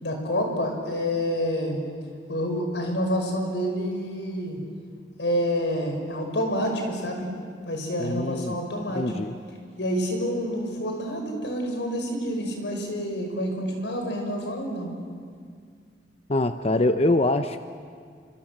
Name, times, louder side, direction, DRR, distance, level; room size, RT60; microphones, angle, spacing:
voice 1, 0.0-1.8 2.3-4.6 5.2-7.3 7.7-9.1 9.8-15.0, equal, 90° left, 3 dB, 5.7 m, -28 dB
voice 2, 8.0-8.6 8.9-9.3 16.3-17.6, left 2 dB, 35° left, 9 dB, 0.7 m, -24 dB
30.0 x 25.0 x 7.5 m, 2.1 s
head